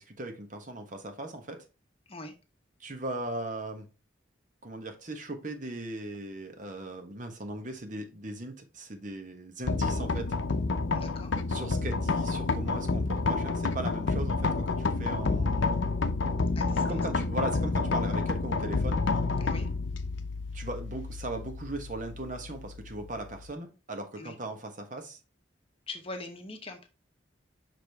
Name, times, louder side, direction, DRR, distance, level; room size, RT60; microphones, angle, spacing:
voice 1, 0.0-1.6 2.8-3.9 4.6-10.3 11.5-15.8 16.8-19.1 20.5-25.2, right 2 dB, 45° right, 1.2 m, -38 dB
sound 1, 9.6-23.5, left 3 dB, 75° left, 0.6 m, -29 dB
voice 2, 10.9-11.3 16.6-17.0 19.4-19.7 24.2-24.3 25.9-26.9, left 2 dB, 30° left, 1.0 m, -42 dB
6.0 x 5.0 x 3.5 m
head